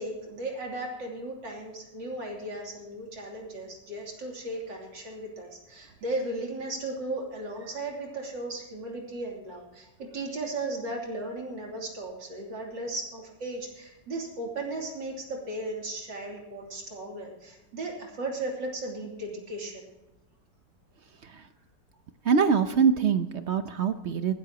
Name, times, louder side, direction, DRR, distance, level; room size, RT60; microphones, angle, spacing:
voice 1, 0.0-19.9, right 2 dB, 90° right, 0 dB, 3.7 m, -36 dB
voice 2, 22.2-24.3, right 6 dB, 55° right, 9 dB, 0.7 m, -24 dB
19.5 x 13.0 x 2.9 m, 0.98 s
omnidirectional pair, 1.9 m